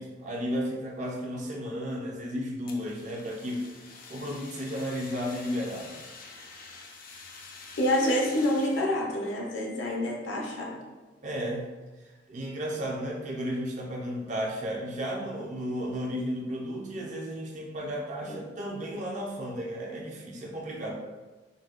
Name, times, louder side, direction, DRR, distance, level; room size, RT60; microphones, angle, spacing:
voice 1, 0.0-3.7 4.1-6.0 11.2-11.7 12.3-20.9, equal, 40° right, -1 dB, 0.5 m, -33 dB
Fire, 2.7-8.9, left 4 dB, 50° left, 0.4 m, -47 dB
voice 2, 7.8-10.8 18.2-18.4, left 1 dB, 80° left, -2 dB, 0.7 m, -27 dB
3.8 x 2.1 x 2.4 m, 1.2 s
head